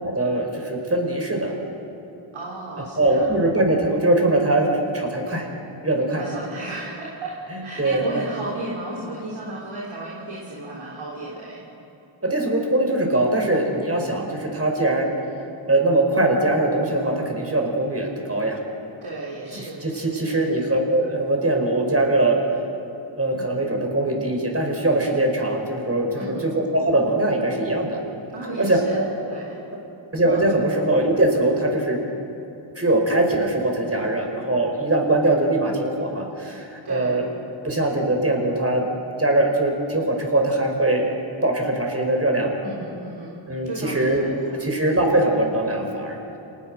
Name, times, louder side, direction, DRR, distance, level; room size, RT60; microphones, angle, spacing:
voice 1, 0.0-1.6 3.0-5.5 5.8-6.2 7.5-8.0 12.3-15.1 15.7-18.6 19.5-22.4 23.2-28.0 28.6-29.1 30.1-32.0 32.8-37.2 37.6-38.8 39.2-41.0 41.4-42.5 43.5-44.3 44.6-46.2, right 2 dB, 30° right, 1 dB, 5.5 m, -22 dB
voice 2, 2.3-3.3 6.2-11.6 19.0-20.5 26.2-26.5 28.3-29.6 30.2-30.4 36.8-37.2 42.6-44.6, right 2 dB, 75° right, -4 dB, 3.7 m, -34 dB
28.0 x 19.5 x 6.5 m, 3.0 s
cardioid pair, 60°, 48 cm